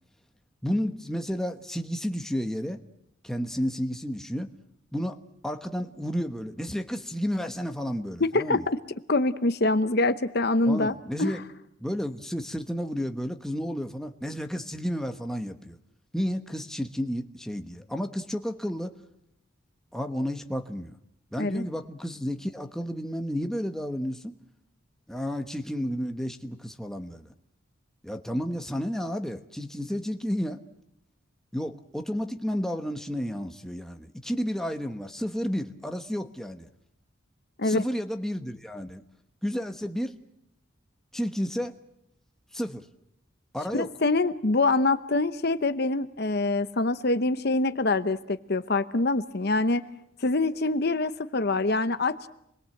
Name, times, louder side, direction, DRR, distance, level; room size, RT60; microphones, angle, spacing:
voice 1, 0.6-2.8 3.2-4.5 4.9-8.6 10.7-11.4 11.8-15.8 16.1-18.9 19.9-20.9 21.3-24.4 25.1-27.3 28.0-30.6 31.5-36.7 37.6-39.0 39.4-40.2 41.1-41.8 42.5-42.9 43.5-43.9, equal, ahead, 5 dB, 1.1 m, -31 dB
voice 2, 8.2-8.8 9.1-11.3 21.4-21.7 37.6-37.8 43.7-49.9 50.2-52.2, left 2 dB, 50° left, 11 dB, 0.9 m, -25 dB
28.0 x 21.5 x 7.8 m, 0.80 s
head